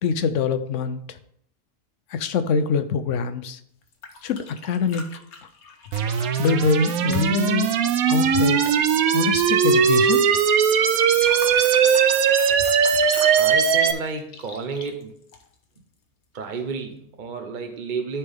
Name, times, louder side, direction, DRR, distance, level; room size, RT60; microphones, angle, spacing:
voice 1, 0.0-1.2 2.1-3.6 4.2-5.2 6.4-7.7 8.0-8.6 9.1-10.2, left 6 dB, 65° left, 10 dB, 1.0 m, -24 dB
sound 1, 3.8-8.5 10.9-15.8 17.2-17.3, left 4 dB, 90° left, 1.5 m, -41 dB
sound 2, 5.9-13.9, right 7 dB, 80° right, 1.1 m, -19 dB
voice 2, 13.3-15.2 16.3-18.2, right 4 dB, 45° right, 5 dB, 0.7 m, -31 dB
13.0 x 4.4 x 3.5 m, 0.69 s
omnidirectional pair, 1.5 m